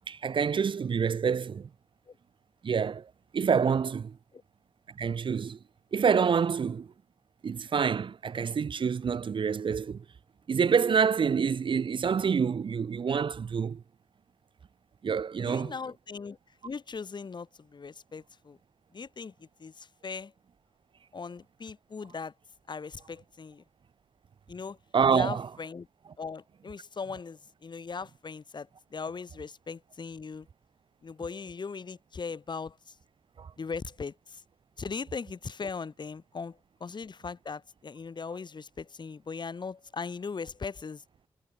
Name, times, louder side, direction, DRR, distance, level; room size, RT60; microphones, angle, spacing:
voice 1, 0.1-1.7 2.6-3.1 3.3-4.1 5.0-5.6 5.9-6.9 7.4-10.0 10.5-13.8 15.0-15.7 24.9-25.5 33.4-33.5, right 6 dB, 55° right, 0.8 m, -27 dB
voice 2, 15.4-16.4 16.6-18.6 18.9-19.3 19.6-20.3 21.1-22.3 22.7-23.6 24.5-24.8 25.1-25.9 26.2-30.5 31.0-32.8 33.6-34.4 34.8-41.0, left 5 dB, 50° left, 1.5 m, -39 dB
cardioid pair, 50°, 10 cm